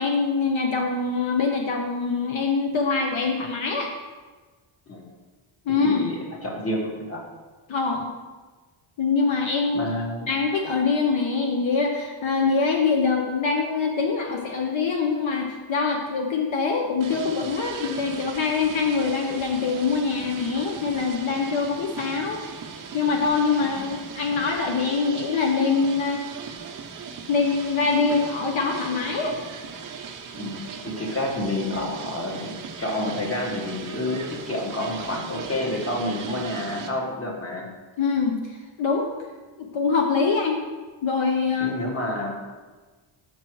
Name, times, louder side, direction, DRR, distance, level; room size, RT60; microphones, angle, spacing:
voice 1, 0.0-3.9 5.7-6.0 7.7-8.1 9.0-9.9 10.3-22.4 22.9-26.2 27.3-29.3 38.0-39.1 39.6-40.6 41.0-41.7, left 4 dB, 70° left, 2 dB, 1.0 m, -24 dB
voice 2, 6.4-7.2 9.7-10.3 23.8-23.9 30.3-37.6 41.6-42.3, left 1 dB, 30° left, -1 dB, 1.6 m, -29 dB
sound 1, 17.0-36.9, right 6 dB, 40° right, 0.7 m, -38 dB
8.3 x 6.1 x 4.6 m, 1.3 s
wide cardioid pair, 170°, 49 cm